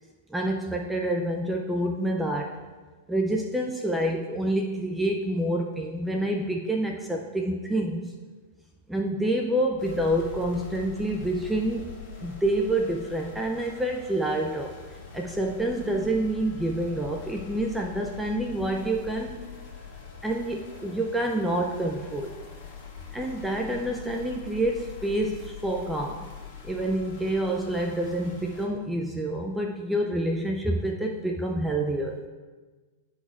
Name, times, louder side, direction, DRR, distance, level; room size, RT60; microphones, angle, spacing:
voice 1, 0.3-2.6 3.1-8.1 8.9-11.9 12.2-14.7 15.1-19.5 20.2-22.3 23.1-26.3 26.6-32.2, right 1 dB, 5° right, 1 dB, 0.4 m, -27 dB
sound 1, 9.8-28.7, left 6 dB, 35° left, 1.7 m, -43 dB
11.5 x 4.1 x 2.4 m, 1.3 s
hypercardioid pair, 125°, 0 cm